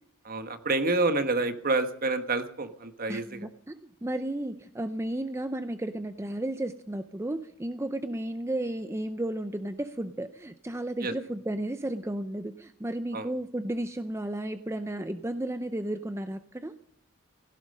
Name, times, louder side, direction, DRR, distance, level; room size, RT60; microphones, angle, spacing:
voice 1, 0.2-3.5 11.0-11.1 13.1-13.3, right 3 dB, 45° right, 9 dB, 1.4 m, -28 dB
voice 2, 3.1-3.7 4.0-16.7, right 1 dB, 15° right, 9 dB, 0.6 m, -33 dB
17.0 x 15.0 x 5.4 m, 0.65 s
head